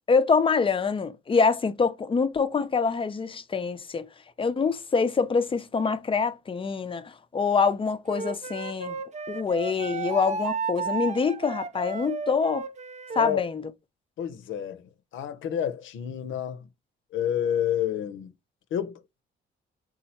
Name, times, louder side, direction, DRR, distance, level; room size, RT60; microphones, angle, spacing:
voice 1, 0.1-4.1 4.4-8.9 9.3-12.7 13.2-13.6, left 5 dB, 25° left, 0.5 m, -25 dB
Wind instrument woodwind instrument, 8.1-13.4, right 5 dB, 35° right, 0.5 m, -33 dB
voice 2, 13.2-13.5 14.2-16.7 17.1-18.3 18.7-19.0, left 10 dB, 75° left, 0.7 m, -29 dB
4.2 x 2.4 x 4.2 m
cardioid pair, 90°, 20 cm